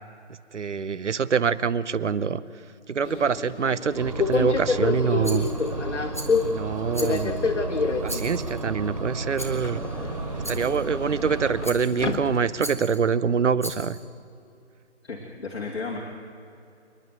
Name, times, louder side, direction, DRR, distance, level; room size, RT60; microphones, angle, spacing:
voice 1, 0.5-2.4 2.9-5.5 6.4-7.4 8.0-9.8 10.3-14.0, right 6 dB, 75° right, 17 dB, 0.9 m, -25 dB
Subway metro underground, 3.0-12.8, left 4 dB, 75° left, 2.0 m, -29 dB
sound 1, 4.0-11.7, right 3 dB, 30° right, 0.8 m, -34 dB
Rattle, 5.2-5.7 6.1-6.5 6.9-7.5 8.0-8.6 9.4-9.7 10.4-10.8 11.6-12.1 12.6-13.0 13.6-14.0, equal, 10° left, 0.6 m, -38 dB
voice 2, 15.0-16.0, left 4 dB, 60° left, -2 dB, 3.0 m, -33 dB
28.5 x 10.5 x 9.5 m, 2.5 s
hypercardioid pair, 170°, 36 cm